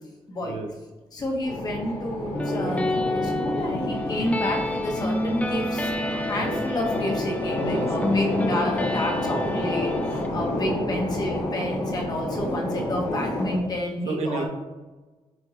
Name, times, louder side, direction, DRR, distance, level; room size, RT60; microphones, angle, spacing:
voice 1, 1.1-5.8 6.3-9.9 10.3-14.4, left 1 dB, 35° left, 0 dB, 1.4 m, -30 dB
sound 1, 1.4-13.6, left 1 dB, 70° left, 1.8 m, -30 dB
sound 2, 2.3-10.3, left 1 dB, 10° left, 0.4 m, -29 dB
voice 2, 7.7-8.4 9.2-9.6 10.7-11.0 12.3-12.5 14.0-14.4, right 4 dB, 75° right, 4 dB, 0.9 m, -33 dB
10.5 x 3.6 x 3.0 m, 1.2 s
cardioid pair, 130°, 11 cm